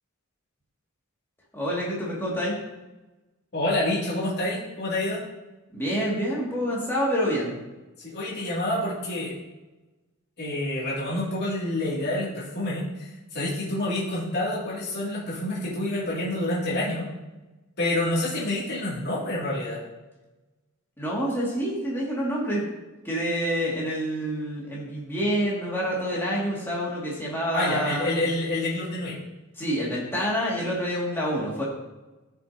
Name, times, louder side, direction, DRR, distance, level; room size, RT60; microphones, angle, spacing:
voice 1, 1.5-2.6 5.7-7.5 21.0-22.6 23.0-28.2 29.6-31.6, equal, 10° left, -6 dB, 2.4 m, -27 dB
voice 2, 3.5-5.2 8.0-9.4 10.4-12.9 13.3-17.1 17.8-19.8 27.5-29.2, left 1 dB, 50° left, -8 dB, 2.8 m, -27 dB
13.0 x 6.8 x 2.9 m, 1.1 s
head